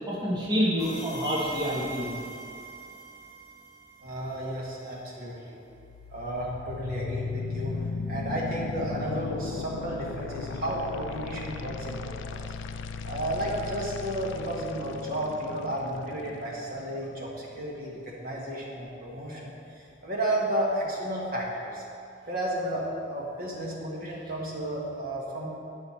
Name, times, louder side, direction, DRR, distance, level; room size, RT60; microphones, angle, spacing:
voice 1, 0.1-2.1, equal, 20° right, -6 dB, 1.1 m, -27 dB
sound 1, 0.8-4.5, right 3 dB, 20° left, 2.1 m, -42 dB
voice 2, 4.0-5.6 6.1-12.5 13.0-21.8 22.3-25.5, right 1 dB, 50° right, -3 dB, 1.4 m, -32 dB
sound 2, 5.7-17.7, left 5 dB, 65° left, 0.3 m, -37 dB
9.5 x 5.6 x 4.3 m, 2.5 s
head